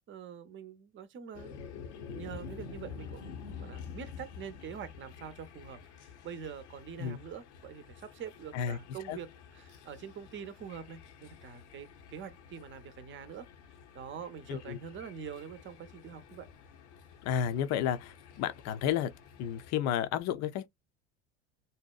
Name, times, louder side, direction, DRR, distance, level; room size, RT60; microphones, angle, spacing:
voice 1, 0.1-1.6 2.1-3.3 3.6-13.5 13.9-16.5, right 7 dB, 35° right, 0.7 m, -45 dB
sound 1, 1.3-19.7, left 6 dB, 85° left, 0.8 m, -49 dB
voice 2, 17.2-19.1 19.4-20.7, left 9 dB, 50° left, 0.5 m, -32 dB
2.7 x 2.1 x 2.3 m
hypercardioid pair, 85°, 34 cm